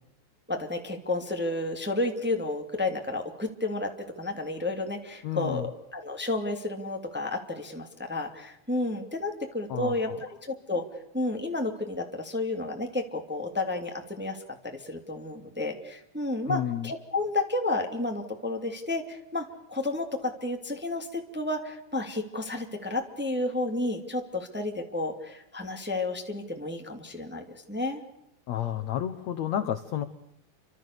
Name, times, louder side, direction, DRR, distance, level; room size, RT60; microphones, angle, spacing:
voice 1, 0.5-3.9 4.2-5.7 5.9-10.1 10.4-10.8 11.1-28.0, left 2 dB, 5° right, 3 dB, 1.8 m, -31 dB
voice 2, 5.2-5.7 9.7-10.2 16.5-16.9 28.5-30.0, left 10 dB, 70° left, 9 dB, 1.6 m, -31 dB
29.0 x 26.0 x 6.9 m, 0.80 s
omnidirectional pair, 4.7 m